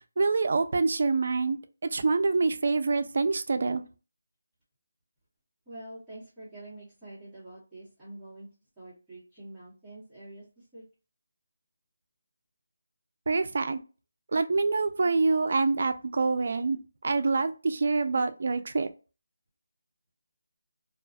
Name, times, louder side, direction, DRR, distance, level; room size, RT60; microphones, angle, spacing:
voice 1, 0.0-3.8 13.3-13.8 14.3-16.8 17.0-18.9, right 3 dB, 55° right, 0.3 m, -26 dB
voice 2, 5.7-8.5 8.8-10.8, right 1 dB, 5° right, 0.9 m, -46 dB
2.3 x 2.1 x 2.4 m
figure-of-eight pair, 165°, 0 cm